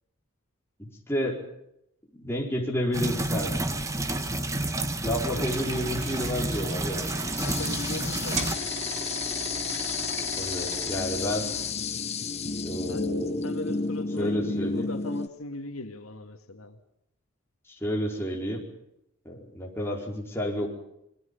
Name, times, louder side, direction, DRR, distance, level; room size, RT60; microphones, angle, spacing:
voice 1, 0.8-1.4 2.1-3.6 5.0-7.1 10.4-11.5 12.6-13.4 14.2-14.9 17.7-18.6 19.2-20.7, equal, 10° left, -1 dB, 4.6 m, -30 dB
sound 1, 2.9-8.6, right 2 dB, 15° right, 1.2 m, -30 dB
sound 2, 5.4-11.7, right 2 dB, 35° right, 2.9 m, -37 dB
voice 2, 7.4-8.7 12.9-13.1 13.4-16.8, left 2 dB, 85° left, 6 dB, 2.0 m, -38 dB
sound 3, 7.4-15.3, left 4 dB, 30° left, 0.9 m, -32 dB
27.0 x 22.5 x 5.4 m, 0.81 s
head